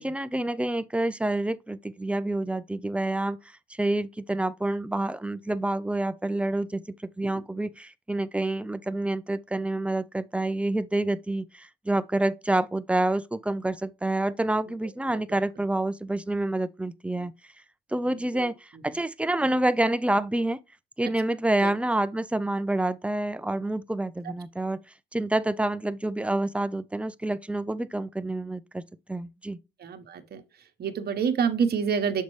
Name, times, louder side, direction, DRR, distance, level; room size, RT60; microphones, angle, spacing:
voice 1, 0.0-17.3 17.9-20.6 21.0-24.8 25.1-28.8 29.1-29.6, right 1 dB, 5° right, 0.5 m, -28 dB
voice 2, 18.1-18.5 18.9-19.0 21.0-21.1 21.6-21.7 29.8-30.4 30.8-32.2, right 6 dB, 50° right, 1.1 m, -28 dB
6.6 x 5.4 x 3.2 m
cardioid pair, 90°, 20 cm